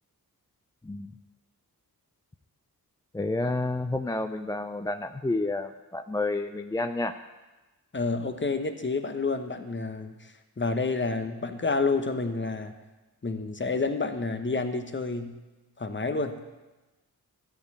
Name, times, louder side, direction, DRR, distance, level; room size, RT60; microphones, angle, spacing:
voice 1, 0.8-1.1 3.1-7.2, left 2 dB, 10° left, 8 dB, 0.4 m, -30 dB
voice 2, 7.9-12.8 13.2-15.4 15.8-16.4, left 3 dB, 30° left, 8 dB, 1.0 m, -29 dB
13.0 x 4.5 x 8.4 m, 1.1 s
cardioid pair, 65°, 38 cm